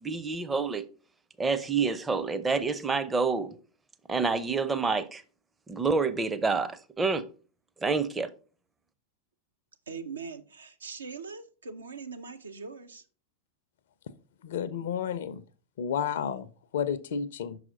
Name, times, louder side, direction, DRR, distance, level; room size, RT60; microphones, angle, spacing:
voice 1, 0.0-0.8 1.4-3.5 4.1-5.2 5.7-7.3 7.8-8.3, right 4 dB, 15° right, 0.6 m, -28 dB
voice 2, 9.9-13.0, right 5 dB, 75° right, 0.7 m, -41 dB
voice 3, 14.4-15.4 15.8-17.6, left 8 dB, 60° left, 0.5 m, -31 dB
6.1 x 4.8 x 3.9 m
figure-of-eight pair, 90°, 0 cm